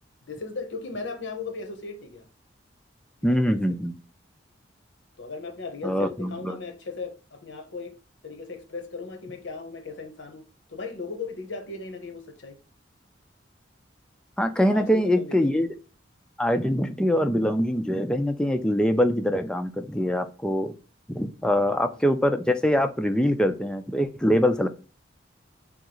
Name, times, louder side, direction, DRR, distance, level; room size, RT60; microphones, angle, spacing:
voice 1, 0.3-2.2 3.3-3.6 5.2-7.9 8.2-10.4 10.7-12.6 14.6-15.6 21.5-22.1, left 4 dB, 75° left, 0.8 m, -37 dB
voice 2, 3.2-4.0 5.8-6.6 14.4-15.7 16.4-20.7 21.1-24.7, equal, 5° left, 0.3 m, -23 dB
3.5 x 2.3 x 2.9 m
head